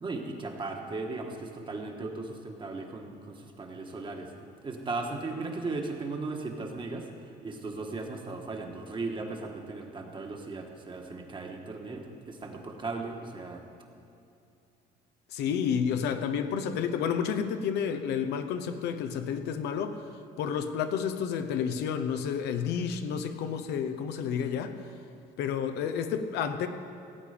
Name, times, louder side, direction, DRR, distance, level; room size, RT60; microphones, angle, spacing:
voice 1, 0.0-4.3 4.6-7.1 7.4-13.6, right 3 dB, 30° right, 2 dB, 1.5 m, -37 dB
voice 2, 15.3-20.0 20.4-24.8 25.4-26.7, left 7 dB, 80° left, 8 dB, 0.8 m, -30 dB
16.5 x 8.5 x 5.1 m, 2.7 s
cardioid pair, 110°, 17 cm